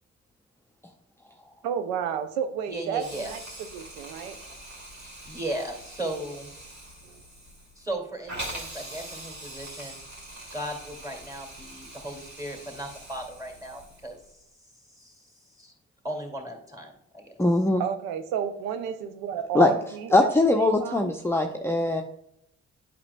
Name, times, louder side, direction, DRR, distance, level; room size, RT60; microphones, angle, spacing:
voice 1, 1.6-3.4 3.7-4.4 7.0-7.2 17.8-21.1, right 8 dB, 85° right, 9 dB, 0.5 m, -31 dB
voice 2, 2.7-3.3 5.0-6.5 7.8-10.0 10.5-14.2 14.9-15.3 15.6-15.7 16.0-17.3, right 1 dB, 10° right, 2 dB, 2.2 m, -36 dB
Hiss, 3.0-14.3, right 1 dB, 50° right, 2.4 m, -43 dB
voice 3, 17.4-17.8 19.5-19.7 20.1-22.0, left 2 dB, 5° left, 3 dB, 0.6 m, -21 dB
8.6 x 5.3 x 2.2 m, 0.74 s
hypercardioid pair, 40°, 34 cm